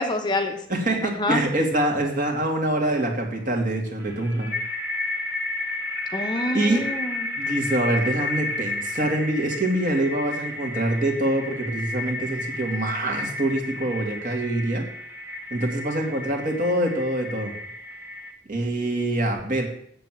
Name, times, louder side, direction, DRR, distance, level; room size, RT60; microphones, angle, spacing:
voice 1, 0.0-0.6 1.0-1.4 6.1-7.3, left 1 dB, 20° left, 5 dB, 0.9 m, -27 dB
voice 2, 0.7-4.5 6.5-6.8 7.4-14.8 15.5-17.6 18.5-19.7, right 1 dB, 45° right, 1 dB, 2.6 m, -25 dB
sound 1, 4.0-18.3, left 2 dB, 10° right, 1.8 m, -32 dB
8.2 x 7.8 x 7.8 m, 0.67 s
head